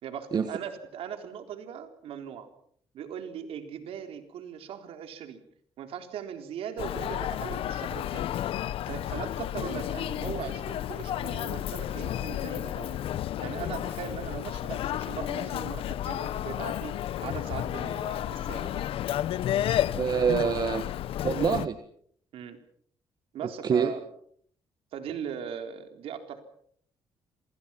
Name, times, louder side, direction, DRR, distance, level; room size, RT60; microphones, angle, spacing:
voice 1, 0.0-2.5 2.9-5.4 5.8-8.3 8.9-13.0 13.4-17.0 17.2-18.9 22.3-22.6 23.3-24.0 24.9-26.4, right 8 dB, 75° right, 7 dB, 3.8 m, -39 dB
Human voice, 6.8-21.7, left 11 dB, 70° left, 0.9 m, -32 dB
voice 2, 19.9-20.8 21.2-21.8 23.4-23.9, right 7 dB, 45° right, 10 dB, 1.6 m, -26 dB
27.0 x 24.5 x 5.8 m, 0.63 s
cardioid pair, 120°, 10 cm